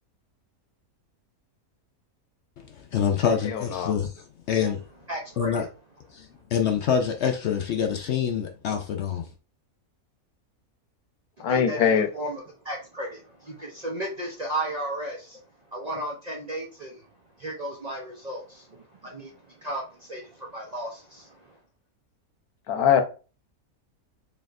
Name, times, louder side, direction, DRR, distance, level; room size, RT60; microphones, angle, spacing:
voice 1, 2.9-4.8 5.4-5.7 6.1-6.3 6.5-9.2, left 7 dB, 65° left, 0.7 m, -26 dB
voice 2, 3.4-3.9 11.4-12.1 22.7-23.0, left 8 dB, 85° left, 1.2 m, -22 dB
voice 3, 5.1-5.7 11.4-15.4 15.7-17.0 17.4-21.5, right 1 dB, 40° right, 0.6 m, -35 dB
4.3 x 3.4 x 2.5 m
omnidirectional pair, 1.5 m